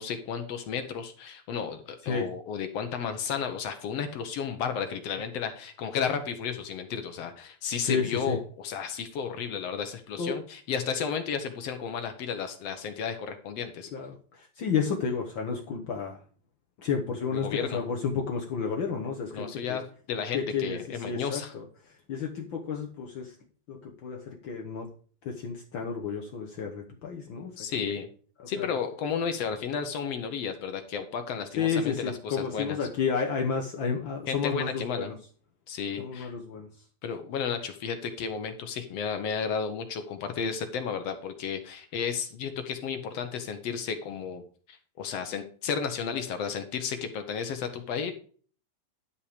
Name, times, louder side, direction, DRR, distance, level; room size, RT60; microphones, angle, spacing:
voice 1, 0.0-13.9 17.3-17.9 19.3-19.8 20.1-21.5 27.6-28.1 28.5-32.8 34.3-35.1 35.7-36.3 37.0-44.4 44.7-48.1, left 6 dB, 65° left, 8 dB, 1.7 m, -33 dB
voice 2, 7.8-8.4 10.2-10.4 13.9-16.2 16.8-19.8 20.3-21.6 22.1-23.3 23.7-24.9 25.2-27.8 28.4-28.7 31.6-35.1 36.0-36.7, left 6 dB, 90° left, 2 dB, 1.0 m, -31 dB
11.5 x 5.8 x 5.1 m, 0.43 s
omnidirectional pair, 3.8 m